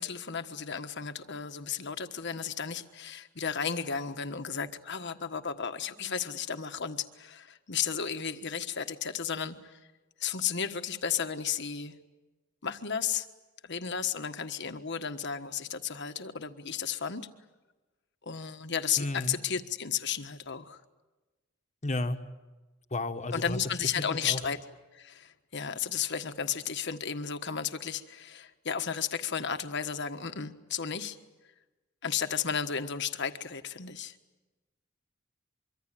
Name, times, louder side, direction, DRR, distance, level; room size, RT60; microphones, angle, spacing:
voice 1, 0.0-9.8 10.2-11.9 12.6-13.3 13.6-17.3 18.2-20.8 23.3-24.6 24.9-31.2 32.0-34.2, left 7 dB, 60° left, 8 dB, 1.4 m, -33 dB
voice 2, 19.0-19.4 21.8-22.2 22.9-23.6 24.0-24.4, left 2 dB, 35° left, 7 dB, 1.5 m, -32 dB
25.0 x 24.5 x 9.1 m, 1.2 s
head